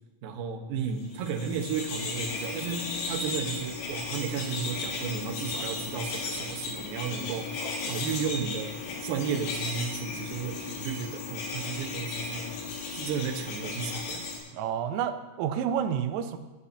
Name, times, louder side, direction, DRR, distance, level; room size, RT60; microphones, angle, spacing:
voice 1, 0.2-7.5 7.9-12.6 12.9-14.2, right 6 dB, 70° right, 2 dB, 2.3 m, -33 dB
sound 1, 1.1-14.4, left 4 dB, 80° left, 5.3 m, -35 dB
voice 2, 14.5-16.4, right 8 dB, 85° right, 9 dB, 3.4 m, -29 dB
22.5 x 13.0 x 2.8 m, 1.2 s
omnidirectional pair, 5.8 m